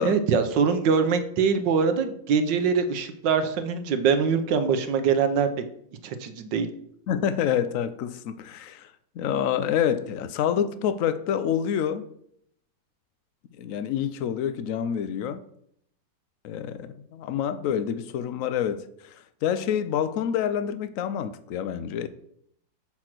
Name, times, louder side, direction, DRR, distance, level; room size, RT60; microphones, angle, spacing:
voice 1, 0.0-5.5 6.0-6.7, right 6 dB, 75° right, 1.5 m, -23 dB
voice 2, 7.1-8.9 9.2-12.1 13.6-15.4 16.4-22.1, left 9 dB, 75° left, 0.7 m, -27 dB
7.6 x 4.5 x 6.0 m
omnidirectional pair, 2.0 m